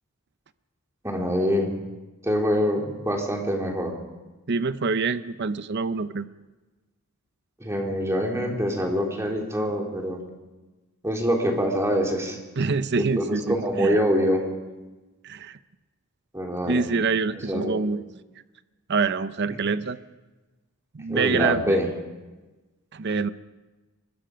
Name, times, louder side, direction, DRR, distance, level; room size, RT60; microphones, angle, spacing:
voice 1, 1.0-1.8 2.2-3.9 7.6-10.2 11.0-12.4 13.0-14.4 16.3-16.8 17.5-17.8 21.1-21.9, equal, 15° right, 0 dB, 3.2 m, -25 dB
voice 2, 4.5-6.3 12.6-14.0 15.2-15.6 16.7-18.0 18.9-20.0 20.9-21.8 22.9-23.3, right 4 dB, 50° right, 13 dB, 0.7 m, -26 dB
24.5 x 21.0 x 5.1 m, 1.2 s
head